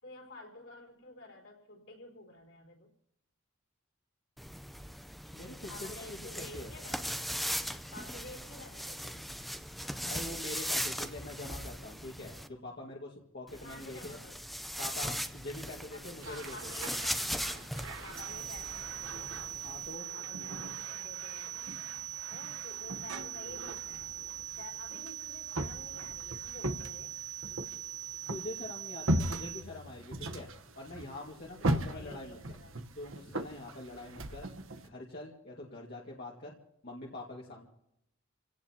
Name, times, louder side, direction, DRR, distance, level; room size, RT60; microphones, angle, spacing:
voice 1, 0.0-2.9 5.7-7.3 7.9-9.5 13.6-14.6 15.9-19.4 20.1-21.7 22.3-24.2 24.5-27.2 31.6-32.8, left 2 dB, 70° left, 0 dB, 4.3 m, -51 dB
sound 1, 4.4-12.5 13.5-20.0, equal, ahead, 0.6 m, -39 dB
voice 2, 5.3-6.7 10.0-14.2 14.8-16.8 19.6-20.1 28.3-30.5 30.7-32.6 33.0-34.5 34.8-36.5 36.8-37.7, left 2 dB, 50° left, -3 dB, 2.0 m, -44 dB
sound 2, 16.2-34.9, right 1 dB, 75° right, 1.2 m, -39 dB
sound 3, 18.2-29.6, right 11 dB, 30° right, 1.3 m, -42 dB
28.5 x 17.0 x 2.9 m, 0.82 s
head